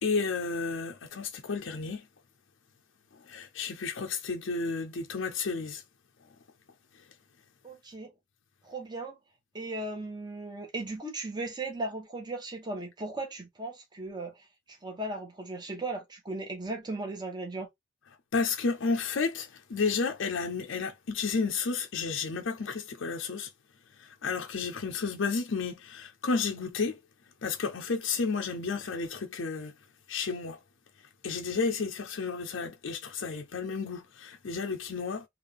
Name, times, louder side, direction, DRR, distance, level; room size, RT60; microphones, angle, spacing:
voice 1, 0.0-2.0 3.2-5.8 18.3-23.5 24.0-27.0 27.4-29.7 30.1-30.6 31.2-35.3, left 4 dB, 60° left, 0.5 m, -32 dB
voice 2, 7.6-8.1 8.6-9.2 9.5-17.7, right 2 dB, 20° right, 1.0 m, -37 dB
3.5 x 2.4 x 3.4 m
head